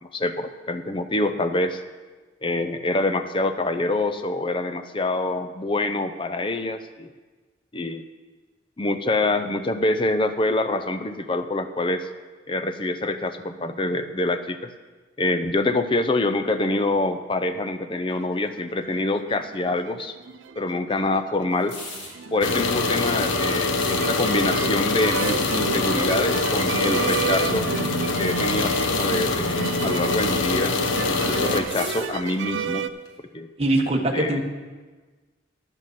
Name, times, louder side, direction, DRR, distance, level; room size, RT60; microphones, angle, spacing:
voice 1, 0.0-1.8 2.4-7.1 7.7-8.1 8.8-12.1 12.5-14.7 15.2-20.2 20.6-21.7 22.3-27.7 28.2-30.8 31.1-32.9 33.3-33.5 34.1-34.4, left 2 dB, 25° left, 9 dB, 0.5 m, -25 dB
sound 1, 18.2-19.0 19.4-32.9, right 5 dB, 80° right, 0.5 m, -32 dB
sound 2, 21.5-22.2 23.1-24.0 24.9-25.6 26.5-27.6 28.1-28.4 28.8-29.1 29.3-29.6 30.5-32.6 33.1-33.2, left 2 dB, 70° left, 2.5 m, -38 dB
sound 3, 22.4-31.6, left 3 dB, 90° left, 0.9 m, -24 dB
voice 2, 33.6-34.4, right 1 dB, 30° right, 1 dB, 1.3 m, -22 dB
10.5 x 6.3 x 7.4 m, 1.3 s
head